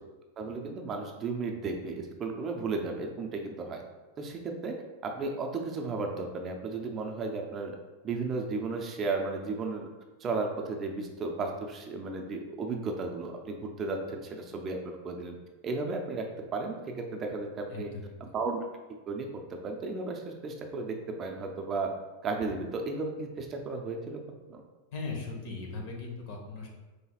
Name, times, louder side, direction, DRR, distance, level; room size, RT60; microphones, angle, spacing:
voice 1, 0.4-3.8 4.2-4.8 5.0-7.8 8.0-9.9 10.2-14.8 15.0-15.4 15.6-16.3 16.5-17.9 18.2-18.6 19.1-19.3 19.6-21.9 22.2-24.2 24.5-24.6, right 3 dB, 25° right, 2 dB, 0.5 m, -34 dB
voice 2, 17.7-18.1 24.9-26.7, left 3 dB, 55° left, 1 dB, 1.0 m, -38 dB
5.6 x 3.2 x 2.3 m, 1.2 s
supercardioid pair, 150°, 0 cm